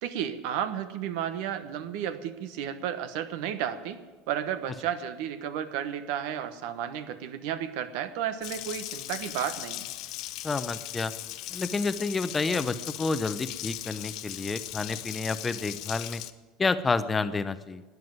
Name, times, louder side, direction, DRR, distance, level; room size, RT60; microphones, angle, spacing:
voice 1, 0.0-4.0 4.3-9.8, right 9 dB, 70° right, 11 dB, 1.1 m, -32 dB
Water tap faucet, 8.4-16.3, left 15 dB, 60° left, 0.8 m, -38 dB
voice 2, 10.4-11.1 11.5-16.2 16.6-17.8, left 4 dB, 20° left, 12 dB, 0.7 m, -29 dB
13.0 x 9.5 x 9.4 m, 1.3 s
supercardioid pair, 115°, 0 cm